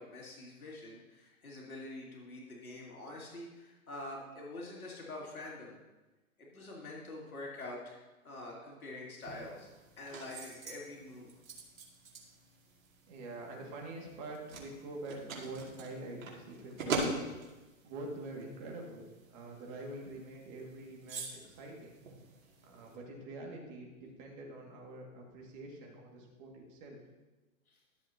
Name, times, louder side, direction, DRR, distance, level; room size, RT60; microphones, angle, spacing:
voice 1, 0.0-5.8 6.4-8.0 8.2-9.7 10.0-11.3 27.7-27.8, left 2 dB, 85° left, -3 dB, 2.8 m, -46 dB
sound 1, 9.2-23.0, right 3 dB, 70° right, 2.6 m, -44 dB
voice 2, 13.1-17.3 17.8-22.0 22.6-27.0, right 2 dB, 35° right, -1 dB, 2.2 m, -46 dB
13.0 x 7.4 x 2.9 m, 1.1 s
hypercardioid pair, 130°, 42 cm